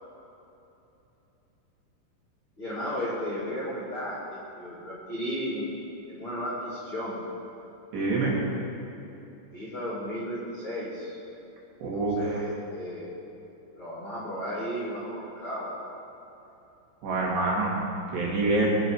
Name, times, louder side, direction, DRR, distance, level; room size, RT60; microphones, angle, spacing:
voice 1, 2.6-5.7 6.1-7.2 9.5-11.2 11.9-13.1 13.7-15.7, equal, 30° left, -10 dB, 3.1 m, -34 dB
voice 2, 7.9-8.4 11.8-12.3 17.0-17.8 18.1-18.7, right 3 dB, 60° right, -5 dB, 4.4 m, -26 dB
23.0 x 9.5 x 4.8 m, 2.9 s
omnidirectional pair, 5.8 m